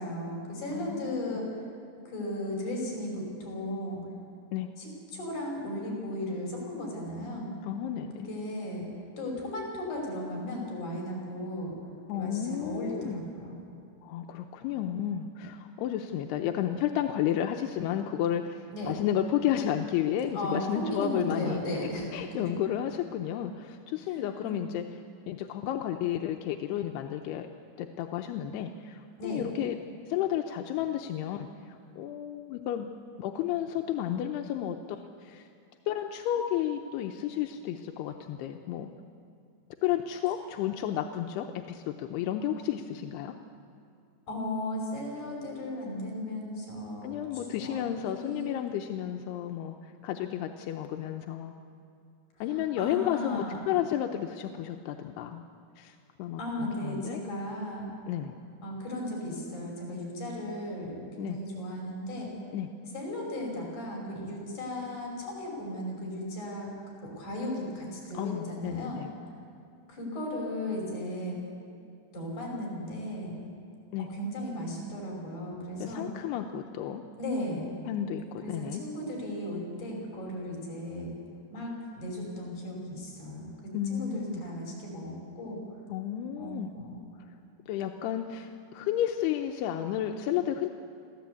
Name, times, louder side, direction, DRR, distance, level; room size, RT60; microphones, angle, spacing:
voice 1, 0.0-1.5 2.1-4.0 4.8-7.5 8.3-8.9 9.2-11.8 12.1-13.6 18.7-18.9 20.3-22.1 24.1-24.6 29.2-29.4 44.3-48.5 52.5-53.6 56.4-57.9 58.6-62.3 62.9-66.7 67.0-69.0 69.9-71.4 72.1-73.4 74.0-76.1 77.2-77.7 78.4-81.1 81.5-85.6 86.4-87.0, left 1 dB, 45° left, -1 dB, 7.0 m, -36 dB
voice 2, 0.7-1.4 4.5-4.7 7.6-8.3 12.1-13.2 14.0-21.6 22.1-24.9 25.3-27.5 27.8-29.8 30.1-32.9 33.2-35.5 35.9-38.9 39.8-43.4 47.0-51.5 52.4-55.4 55.8-57.2 58.1-58.4 61.2-61.4 62.5-62.7 68.1-69.1 73.9-74.1 75.8-77.0 77.9-78.8 83.7-84.4 85.9-86.7 87.7-90.7, left 10 dB, 85° left, 4 dB, 2.7 m, -32 dB
25.0 x 15.0 x 8.3 m, 2.6 s
omnidirectional pair, 4.8 m